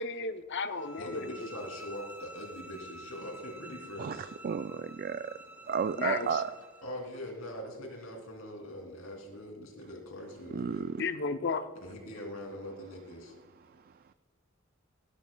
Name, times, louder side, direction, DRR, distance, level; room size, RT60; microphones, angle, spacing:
voice 1, 0.0-1.5 6.0-6.3 11.0-11.6, left 4 dB, 55° left, 10 dB, 0.6 m, -33 dB
sound 1, 0.8-6.9, right 1 dB, 10° right, 1.1 m, -49 dB
voice 2, 1.0-4.3 6.8-10.8 11.8-13.3, left 1 dB, 85° left, 1 dB, 2.9 m, -42 dB
voice 3, 4.0-5.3 5.6-6.5 10.5-11.0, right 6 dB, 45° right, 11 dB, 0.3 m, -32 dB
17.0 x 12.5 x 2.3 m, 1.5 s
head